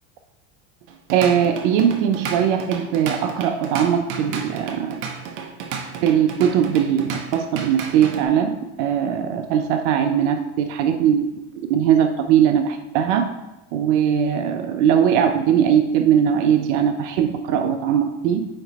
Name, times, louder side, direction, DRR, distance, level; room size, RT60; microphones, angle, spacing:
Drum kit / Drum, 0.9-8.2, right 6 dB, 55° right, 0.9 m, -32 dB
voice 1, 1.1-5.0 6.0-11.3 11.6-13.3 13.7-18.5, right 9 dB, 75° right, 6 dB, 0.6 m, -20 dB
8.8 x 3.0 x 4.0 m, 1.0 s
supercardioid pair, 110°, 37 cm